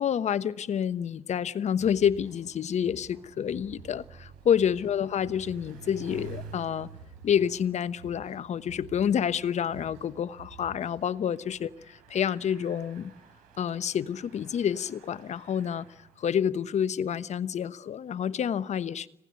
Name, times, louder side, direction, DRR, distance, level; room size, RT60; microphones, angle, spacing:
voice 1, 0.0-6.9 7.2-13.1 13.6-15.8 16.2-19.1, left 8 dB, 50° left, 1.1 m, -28 dB
sound 1, 1.7-11.3, right 5 dB, 90° right, 5.0 m, -52 dB
Bicycle, 2.1-16.5, right 5 dB, 75° right, 6.5 m, -51 dB
26.5 x 18.0 x 9.6 m
hypercardioid pair, 50°, 14 cm